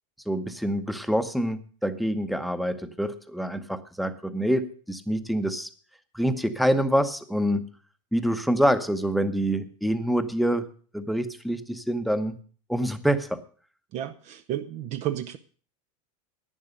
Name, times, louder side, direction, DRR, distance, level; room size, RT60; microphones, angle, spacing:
voice 1, 0.3-5.7 6.1-7.7 8.1-10.7 10.9-12.4 12.7-13.4, equal, ahead, 10 dB, 0.9 m, -26 dB
voice 2, 13.9-15.4, right 12 dB, 40° right, 8 dB, 0.6 m, -32 dB
11.0 x 9.5 x 6.5 m, 0.43 s
supercardioid pair, 140°, 18 cm